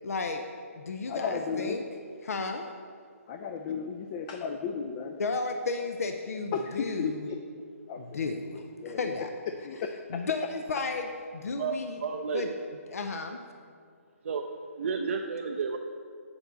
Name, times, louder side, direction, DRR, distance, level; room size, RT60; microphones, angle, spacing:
voice 1, 0.0-0.4 0.8-1.8 2.2-2.6 5.2-7.3 8.0-9.3 10.1-12.0 12.3-12.5 12.9-13.4, left 3 dB, 70° left, 6 dB, 0.6 m, -33 dB
voice 2, 1.1-1.8 3.3-5.2 6.5-7.4 7.9-9.2 9.6-10.2, left 6 dB, 25° left, 5 dB, 0.4 m, -35 dB
voice 3, 11.5-12.5 14.2-14.5 14.8-15.8, right 5 dB, 55° right, 2 dB, 0.5 m, -32 dB
7.8 x 7.1 x 4.0 m, 2.1 s
hypercardioid pair, 150°, 8 cm